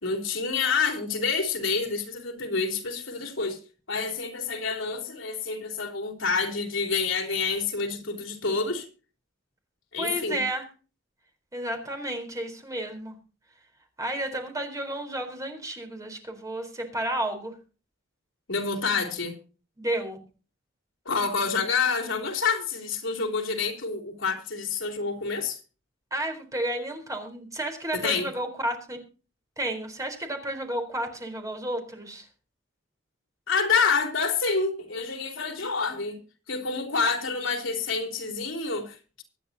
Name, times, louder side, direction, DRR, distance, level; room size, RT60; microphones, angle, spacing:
voice 1, 0.0-3.6 3.9-8.9 9.9-10.4 18.5-19.3 21.0-25.6 27.9-28.3 33.5-36.2 36.5-39.2, left 4 dB, 75° left, 3.4 m, -28 dB
voice 2, 10.0-10.7 11.5-13.1 14.0-17.5 19.8-20.2 26.1-29.0 29.6-32.3, right 1 dB, 15° right, 4.1 m, -32 dB
24.0 x 9.8 x 2.8 m
head